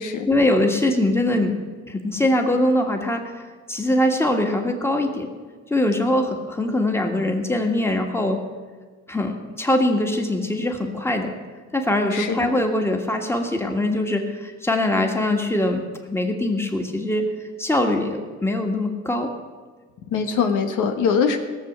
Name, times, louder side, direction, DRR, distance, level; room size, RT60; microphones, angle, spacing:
voice 1, 0.3-1.5 1.9-5.3 5.7-8.4 9.1-11.3 11.7-17.3 17.6-19.3, left 1 dB, 10° left, 3 dB, 1.8 m, -22 dB
voice 2, 12.1-12.5 20.1-21.4, left 6 dB, 85° left, 5 dB, 1.3 m, -22 dB
17.0 x 6.9 x 7.2 m, 1.4 s
cardioid pair, 90°, 30 cm